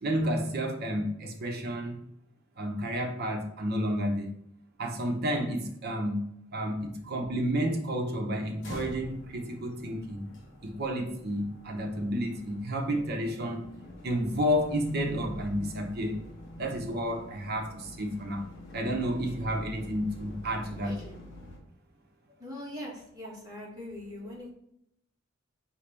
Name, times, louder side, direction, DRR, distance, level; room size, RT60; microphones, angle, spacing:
voice 1, 0.0-2.0 2.6-4.3 4.8-6.2 6.5-10.3 10.6-13.6 14.0-16.2 16.5-18.5 18.7-20.9, equal, 50° right, 0.7 m, -31 dB
sound 1, 8.6-21.6, left 1 dB, 60° left, 1.1 m, -46 dB
voice 2, 20.7-21.1 22.4-24.5, left 1 dB, 20° right, 1.5 m, -42 dB
4.8 x 2.9 x 3.2 m
head